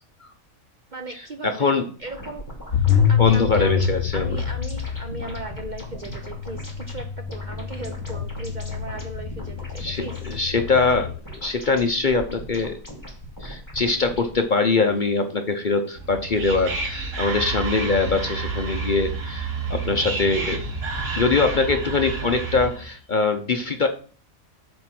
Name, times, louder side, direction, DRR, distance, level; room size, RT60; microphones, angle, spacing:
voice 1, 0.9-1.7 2.0-3.9 4.1-10.2, right 2 dB, 45° right, 5 dB, 0.7 m, -37 dB
voice 2, 1.4-1.9 3.2-4.4 9.8-12.8 13.4-20.6 21.2-23.9, left 4 dB, 45° left, 6 dB, 0.7 m, -23 dB
sound 1, 2.0-14.4, equal, 15° left, 2.6 m, -39 dB
sound 2, 2.7-11.2, left 8 dB, 70° left, 1.1 m, -26 dB
Whispering, 16.0-22.9, right 3 dB, 60° right, 1.6 m, -29 dB
7.9 x 4.4 x 5.9 m, 0.40 s
omnidirectional pair, 1.4 m